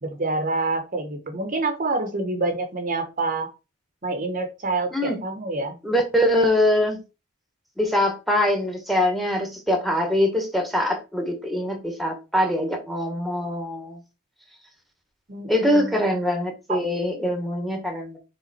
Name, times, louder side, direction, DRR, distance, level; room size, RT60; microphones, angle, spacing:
voice 1, 0.0-3.5 4.0-5.8 15.3-16.0 16.7-16.8, right 3 dB, 35° right, 6 dB, 1.1 m, -27 dB
voice 2, 5.8-7.0 7.8-14.0 15.5-18.2, left 1 dB, ahead, 4 dB, 1.6 m, -23 dB
7.1 x 3.7 x 4.3 m, 0.28 s
head